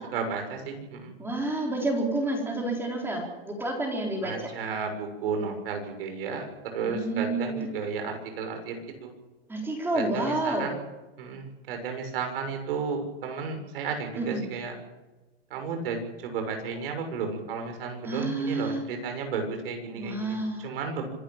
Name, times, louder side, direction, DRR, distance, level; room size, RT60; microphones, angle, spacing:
voice 1, 0.1-1.1 4.2-6.5 6.7-9.1 9.9-10.8 11.2-14.7 15.5-21.1, right 5 dB, 65° right, 5 dB, 6.6 m, -33 dB
voice 2, 1.2-4.3 6.8-7.7 9.5-10.7 14.2-14.4 18.0-18.8 19.9-20.7, right 2 dB, 5° right, 1 dB, 4.2 m, -29 dB
25.5 x 12.5 x 9.0 m, 1.1 s
supercardioid pair, 155°, 31 cm